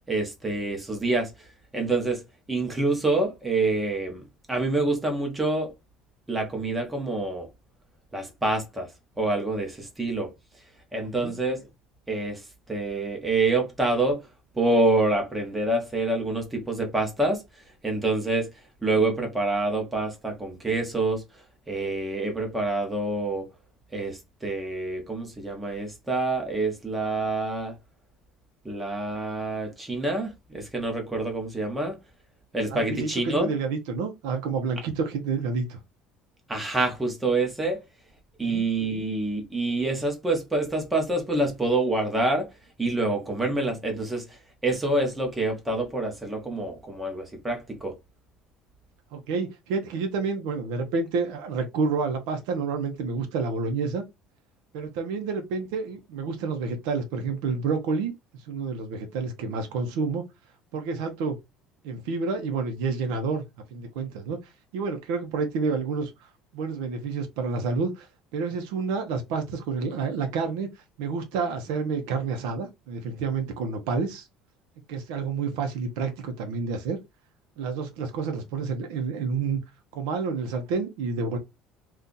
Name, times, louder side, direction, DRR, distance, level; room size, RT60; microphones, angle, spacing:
voice 1, 0.1-1.3 1.7-2.2 2.5-4.2 4.5-5.7 6.3-7.5 8.1-8.9 9.2-10.3 10.9-11.7 12.1-12.4 12.7-14.2 14.5-17.4 17.8-18.5 18.8-21.2 21.7-23.5 23.9-27.7 28.6-32.0 32.5-33.5 36.5-37.8 38.4-42.5 42.8-44.4 44.6-47.9, right 2 dB, 10° right, 0.8 m, -26 dB
voice 2, 32.7-35.8 38.4-38.6 49.1-54.0 54.7-58.1 58.5-60.2 60.7-61.4 61.8-63.4 63.7-64.4 64.7-68.1 68.3-70.7 71.0-74.3 74.9-77.0 77.6-79.6 79.9-81.4, right 4 dB, 85° right, 0.7 m, -29 dB
2.7 x 2.4 x 3.7 m
cardioid pair, 180°, 0 cm